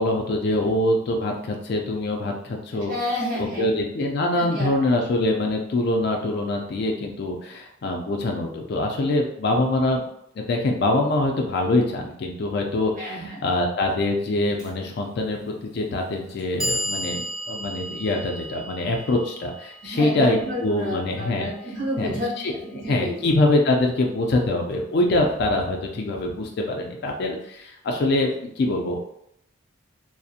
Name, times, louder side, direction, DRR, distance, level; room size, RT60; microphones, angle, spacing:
voice 1, 0.0-2.9 3.4-10.0 10.4-21.5 22.0-22.5 22.8-29.0, left 2 dB, 50° left, 1 dB, 0.3 m, -24 dB
voice 2, 2.9-3.7 4.4-4.9 13.0-13.4 19.8-23.3, left 1 dB, 40° right, -6 dB, 0.9 m, -30 dB
Clock, 14.6-14.7 15.7-15.8 16.3-22.3, equal, 5° right, 0.5 m, -34 dB
2.6 x 2.0 x 2.4 m, 0.75 s
head